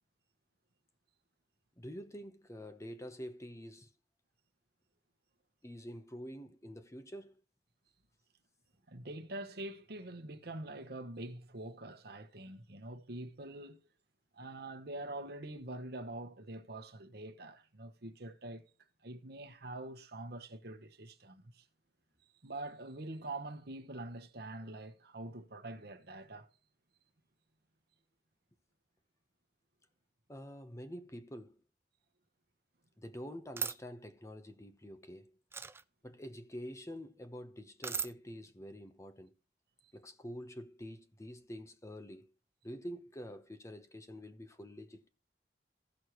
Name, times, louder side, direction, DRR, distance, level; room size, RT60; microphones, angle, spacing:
voice 1, 1.8-3.9 5.6-7.3 30.3-31.6 33.0-35.3 36.0-39.3 39.9-42.3 42.6-45.1, equal, 15° left, 0.9 m, -47 dB
voice 2, 8.9-13.9 14.3-18.6 19.0-21.6 22.4-26.5, right 2 dB, 65° right, 1.1 m, -45 dB
sound 1, 33.6-33.8 35.5-35.8 37.8-38.1, right 5 dB, 15° right, 0.4 m, -36 dB
15.5 x 6.5 x 3.1 m
head